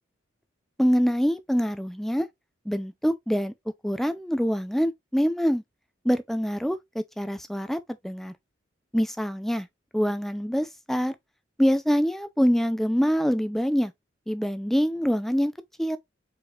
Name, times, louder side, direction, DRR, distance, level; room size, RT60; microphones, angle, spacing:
voice 1, 0.8-2.3 2.7-3.5 3.8-5.6 6.0-7.8 8.0-8.3 8.9-9.7 9.9-11.1 11.6-13.9 14.3-15.5 15.8-16.0, equal, ahead, 0.4 m, -25 dB
4.8 x 4.0 x 2.3 m
head